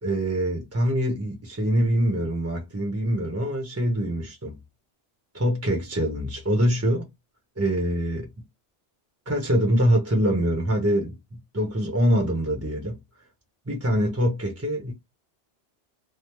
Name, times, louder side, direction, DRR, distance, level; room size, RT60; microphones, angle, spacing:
voice 1, 0.0-4.6 5.3-7.1 7.6-8.3 9.3-11.1 11.5-13.0 13.7-14.9, equal, 15° right, 0.7 m, -24 dB
3.2 x 2.0 x 3.0 m
omnidirectional pair, 1.2 m